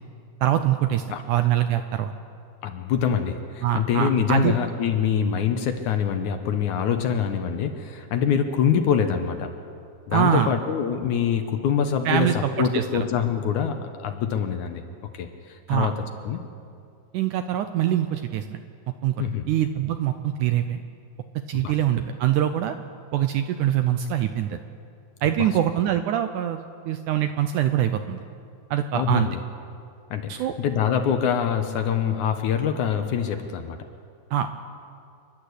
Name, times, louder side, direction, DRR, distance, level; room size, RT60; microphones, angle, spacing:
voice 1, 0.4-2.1 3.6-4.5 10.1-10.5 12.1-13.1 15.7-15.9 17.1-18.6 19.0-20.8 21.5-22.8 23.1-24.6 25.2-26.6 26.9-28.2 28.7-29.3 30.3-30.5 34.3-34.6, right 11 dB, 75° right, 8 dB, 1.9 m, -24 dB
voice 2, 2.6-9.5 10.1-14.8 15.1-16.0 16.2-16.4 19.2-19.5 21.5-21.7 25.4-25.5 28.9-29.4 30.1-33.8, left 8 dB, 70° left, 6 dB, 2.1 m, -25 dB
28.0 x 11.5 x 8.2 m, 2.4 s
omnidirectional pair, 4.2 m